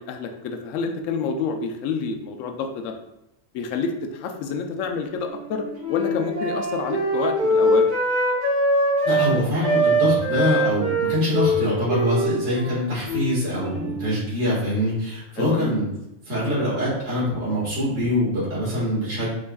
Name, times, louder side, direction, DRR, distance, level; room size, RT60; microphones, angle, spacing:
voice 1, 0.0-2.9 3.5-7.9 15.4-15.7, left 5 dB, 70° left, 4 dB, 0.9 m, -28 dB
Wind instrument woodwind instrument, 5.3-9.3 9.6-14.1, right 1 dB, 85° right, 2.1 m, -23 dB
voice 2, 9.0-15.9 16.3-19.3, left 1 dB, 60° right, -8 dB, 2.1 m, -24 dB
7.4 x 2.5 x 2.3 m, 0.85 s
omnidirectional pair, 1.5 m